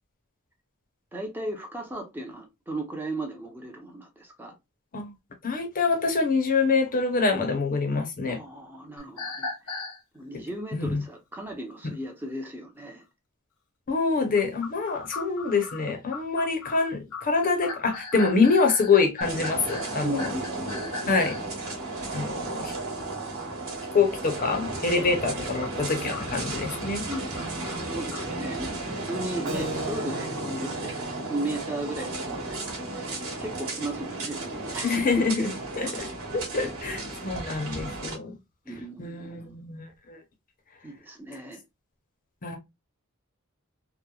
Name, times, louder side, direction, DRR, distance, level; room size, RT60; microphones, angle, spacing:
voice 1, 1.1-4.5 8.3-9.8 10.1-13.0 20.0-20.9 25.0-25.7 27.1-33.1 33.4-35.5 38.7-39.6 40.8-41.6, right 1 dB, 10° right, 0.5 m, -36 dB
voice 2, 5.4-8.4 10.7-11.0 13.9-20.3 21.1-21.4 22.1-22.7 23.9-27.0 34.8-35.5 35.8-38.3 39.0-40.2 42.4-42.6, left 4 dB, 40° left, 0.6 m, -25 dB
sound 1, 9.0-10.0 14.4-21.5 25.4-28.3, left 3 dB, 85° left, 0.8 m, -38 dB
sound 2, 19.2-38.1, right 2 dB, 80° right, 1.2 m, -34 dB
Keyboard (musical), 29.5-34.5, right 1 dB, 60° right, 0.6 m, -41 dB
2.9 x 2.1 x 2.2 m
head